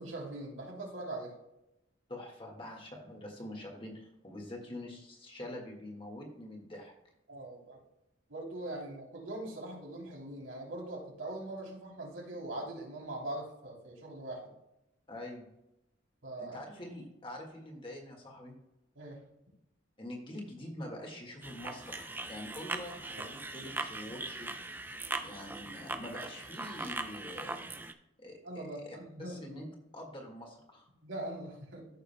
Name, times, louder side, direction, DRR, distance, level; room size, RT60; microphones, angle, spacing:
voice 1, 0.0-1.3 7.3-7.8 8.3-14.5 16.2-16.6 18.9-19.2 28.4-29.7 31.0-31.9, right 1 dB, 85° right, -2 dB, 3.2 m, -42 dB
voice 2, 2.1-6.9 15.1-15.5 16.4-18.5 20.0-24.5 25.2-27.7 28.2-29.7 29.9-30.9, left 1 dB, 25° left, 0 dB, 1.7 m, -45 dB
sound 1, 21.4-27.9, right 2 dB, 10° right, 0.4 m, -40 dB
14.0 x 6.5 x 2.2 m, 0.88 s
head